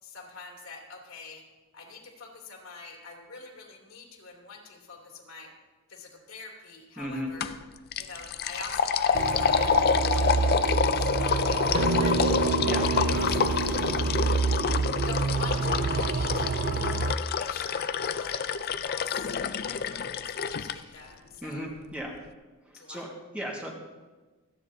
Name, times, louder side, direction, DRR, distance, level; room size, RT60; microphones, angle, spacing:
voice 1, 0.0-1.4 1.7-5.5 5.9-7.5 7.9-9.7 10.1-13.8 14.1-14.5 15.0-17.0 17.3-19.2 19.6-19.9 20.2-21.7 22.7-23.1, left 3 dB, 70° left, -1 dB, 3.0 m, -45 dB
voice 2, 7.0-7.3 12.6-12.9 21.4-22.2 22.7-23.7, equal, 5° right, -2 dB, 1.7 m, -36 dB
sound 1, 7.4-7.6 7.9-20.8, left 6 dB, 45° left, 0.4 m, -28 dB
sound 2, 9.1-17.1, right 4 dB, 45° right, 0.4 m, -28 dB
sound 3, 11.7-16.3, right 3 dB, 65° right, 0.8 m, -31 dB
27.0 x 9.8 x 2.8 m, 1.3 s
head